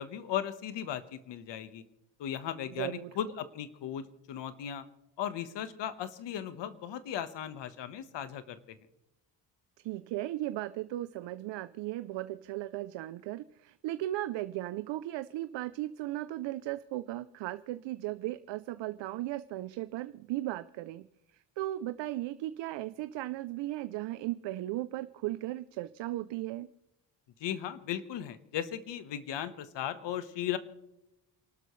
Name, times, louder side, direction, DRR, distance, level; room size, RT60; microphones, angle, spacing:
voice 1, 0.0-1.8 2.2-4.8 5.2-8.8 27.4-30.6, left 10 dB, 80° left, 12 dB, 1.3 m, -37 dB
voice 2, 2.8-3.1 9.8-21.1 21.6-26.7, right 15 dB, 90° right, 13 dB, 0.6 m, -36 dB
28.5 x 12.5 x 3.2 m, 0.87 s
cardioid pair, 105°, 42 cm